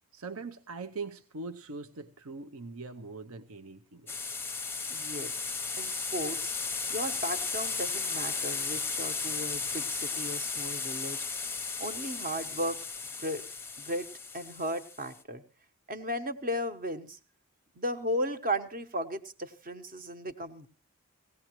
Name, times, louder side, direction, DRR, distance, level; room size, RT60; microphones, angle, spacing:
voice 1, 0.1-4.4, right 3 dB, 75° right, 9 dB, 0.8 m, -42 dB
sound 1, 4.1-15.2, left 4 dB, 10° left, 0.8 m, -35 dB
voice 2, 4.9-5.3 5.8-6.5 6.9-11.2 11.8-12.8 13.2-13.4 13.8-14.1 14.3-15.4 15.9-17.2 17.7-20.7, equal, 40° right, 8 dB, 1.1 m, -35 dB
19.0 x 17.0 x 3.0 m, 0.35 s
head